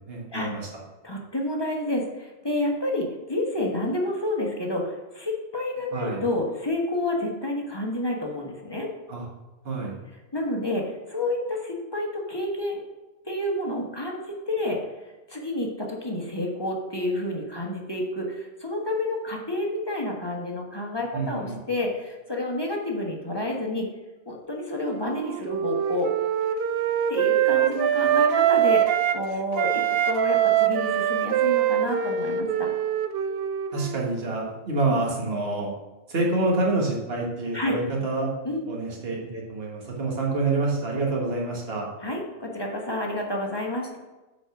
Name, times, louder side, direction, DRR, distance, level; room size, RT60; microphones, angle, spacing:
voice 1, 0.1-0.7 5.9-6.2 9.1-9.2 9.6-10.0 21.1-21.6 33.7-35.7 36.1-38.3 38.7-41.9, right 2 dB, 45° right, -2 dB, 1.8 m, -27 dB
voice 2, 1.0-8.9 10.3-12.8 13.3-14.8 15.3-23.9 24.3-26.1 27.1-32.7 34.8-35.0 37.5-37.8 38.4-38.7 42.0-44.0, left 1 dB, 20° left, -1 dB, 1.1 m, -29 dB
Wind instrument woodwind instrument, 24.8-29.2 29.5-34.1, right 10 dB, 60° right, 0.6 m, -23 dB
7.8 x 4.3 x 5.9 m, 1.1 s
omnidirectional pair, 1.4 m